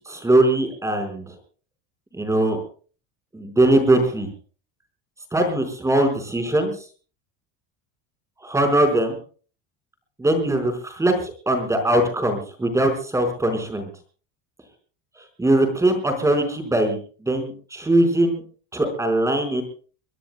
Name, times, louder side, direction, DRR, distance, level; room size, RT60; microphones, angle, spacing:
voice 1, 0.1-1.4 2.1-2.6 3.3-4.3 5.3-6.7 8.4-9.2 10.2-13.9 15.2-18.4 18.7-19.6, right 1 dB, 10° right, 6 dB, 4.7 m, -21 dB
24.0 x 22.5 x 2.2 m, 0.40 s
cardioid pair, 155°, 35 cm